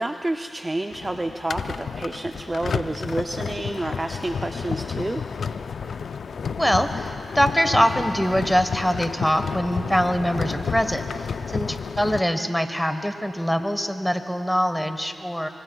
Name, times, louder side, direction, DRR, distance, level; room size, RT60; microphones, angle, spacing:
voice 1, 0.0-5.2, right 1 dB, 25° right, 5 dB, 0.6 m, -29 dB
sound 1, 0.9-12.2, left 6 dB, 75° left, 0.4 m, -31 dB
voice 2, 6.6-11.1 11.5-15.5, equal, ahead, 8 dB, 1.2 m, -23 dB
25.0 x 24.0 x 2.3 m, 2.4 s
cardioid pair, 55°, 0 cm